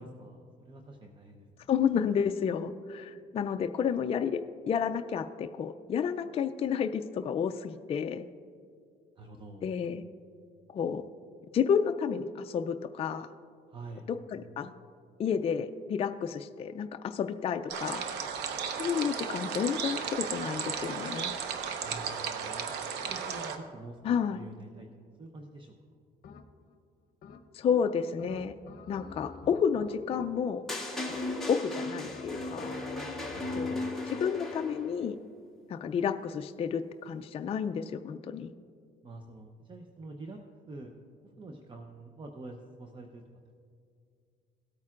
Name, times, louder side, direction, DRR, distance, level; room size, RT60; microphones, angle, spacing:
voice 1, 0.0-1.7 9.2-9.7 13.7-14.1 21.8-22.7 23.1-25.8 33.3-34.1 39.0-40.4 40.7-40.9 41.4-43.2, right 2 dB, 30° right, 3 dB, 0.8 m, -47 dB
voice 2, 1.7-4.4 4.7-8.2 9.6-10.0 10.7-11.0 11.5-13.3 14.1-14.7 15.2-18.0 18.6-21.3 24.0-24.4 27.5-28.5 28.9-30.6 31.5-32.8 33.5-33.8 34.1-35.2 35.7-38.5, left 7 dB, 35° left, 7 dB, 0.4 m, -31 dB
sound 1, 17.7-23.6, right 6 dB, 90° right, 0.9 m, -35 dB
sound 2, 26.2-26.8 27.2-27.7 28.2-30.7 31.1-31.6 32.0-34.0, left 4 dB, 60° left, 0.8 m, -49 dB
sound 3, 30.7-34.9, left 2 dB, ahead, 1.7 m, -36 dB
17.5 x 8.8 x 2.5 m, 2.3 s
cardioid pair, 110°, 17 cm